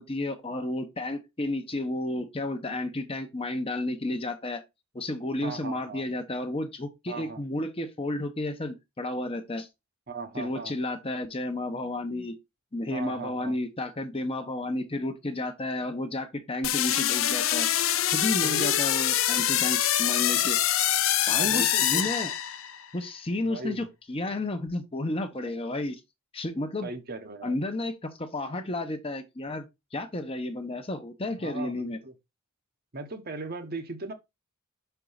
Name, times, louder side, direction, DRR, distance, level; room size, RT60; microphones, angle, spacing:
voice 1, 0.1-4.6 4.9-9.7 10.4-12.3 12.7-17.7 18.1-20.6 21.3-22.3 22.9-26.0 26.3-26.9 27.4-32.0, left 2 dB, 25° left, 0.9 m, -32 dB
voice 2, 5.4-6.0 7.1-7.4 10.1-10.7 12.9-13.6 18.4-18.7 21.3-22.1 23.4-23.9 25.4-25.5 26.8-27.5 31.4-32.1 32.9-34.1, right 3 dB, 45° right, 1.1 m, -37 dB
sound 1, 16.6-22.8, left 11 dB, 75° left, 0.7 m, -25 dB
6.1 x 4.5 x 3.9 m
head